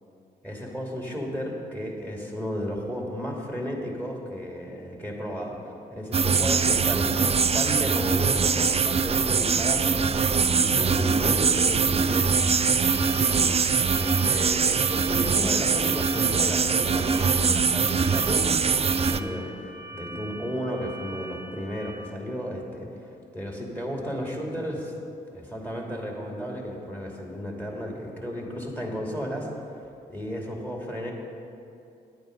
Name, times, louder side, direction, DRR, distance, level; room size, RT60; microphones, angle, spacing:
voice 1, 0.4-10.0 10.4-24.9 25.3-29.5 30.1-31.1, equal, 10° left, 0 dB, 2.6 m, -34 dB
sound 1, 6.1-19.2, right 5 dB, 30° right, 0.5 m, -23 dB
sound 2, 12.3-21.9, right 2 dB, 80° left, 1.9 m, -42 dB
10.5 x 8.8 x 5.2 m, 2.6 s
hypercardioid pair, 40°, 20 cm